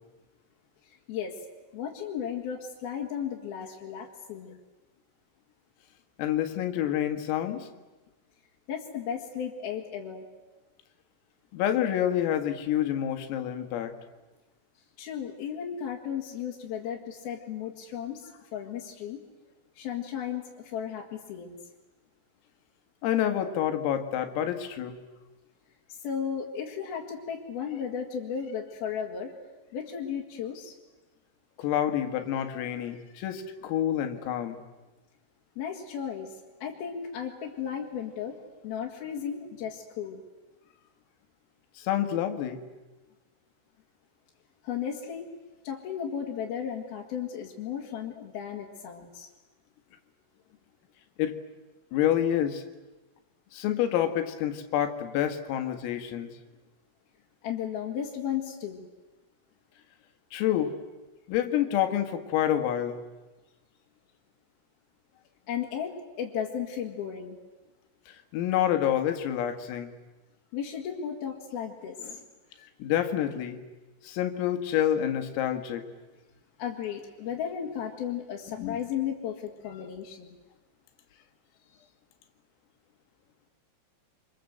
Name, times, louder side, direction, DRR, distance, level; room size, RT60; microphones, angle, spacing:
voice 1, 0.8-1.4 1.7-4.6 8.7-10.3 15.0-19.2 19.8-21.6 25.9-29.3 29.7-30.8 35.6-38.4 38.6-40.2 44.6-45.3 45.6-49.3 57.4-58.9 65.5-67.4 70.5-72.3 76.6-80.4, left 8 dB, 55° left, -2 dB, 3.4 m, -35 dB
voice 2, 6.2-7.7 11.5-13.9 23.0-25.0 31.6-34.6 41.8-42.6 51.2-51.4 51.9-52.6 53.5-56.4 60.3-60.8 61.3-63.0 68.1-69.9 72.8-73.6 74.0-75.8 78.5-78.8, left 10 dB, 90° left, 7 dB, 4.4 m, -28 dB
27.0 x 25.5 x 7.9 m, 1.2 s
omnidirectional pair, 5.8 m